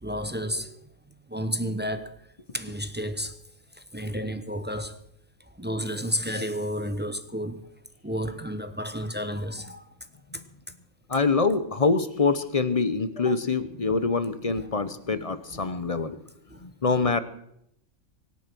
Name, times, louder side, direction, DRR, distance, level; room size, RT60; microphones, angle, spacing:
voice 1, 0.0-0.8 1.3-2.1 2.5-3.3 3.9-5.0 5.6-7.7 8.0-9.8 14.6-14.7 16.5-16.6, equal, 10° right, 0.6 m, -31 dB
voice 2, 11.1-16.2 16.6-17.2, left 4 dB, 30° left, 0.8 m, -25 dB
24.0 x 8.6 x 6.2 m
omnidirectional pair, 1.5 m